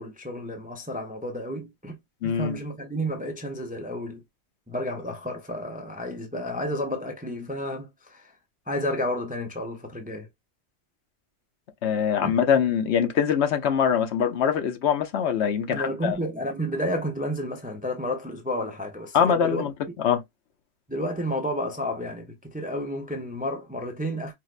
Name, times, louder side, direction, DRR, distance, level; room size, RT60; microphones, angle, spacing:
voice 1, 0.0-2.0 2.2-4.2 4.7-8.3 8.7-10.3 12.2-12.3 15.7-19.7 20.9-24.3, equal, 15° right, 0.3 m, -31 dB
voice 2, 2.2-2.6 11.8-16.2 19.1-19.7 20.0-20.2, left 7 dB, 85° left, 1.0 m, -23 dB
4.5 x 2.1 x 2.4 m
omnidirectional pair, 1.1 m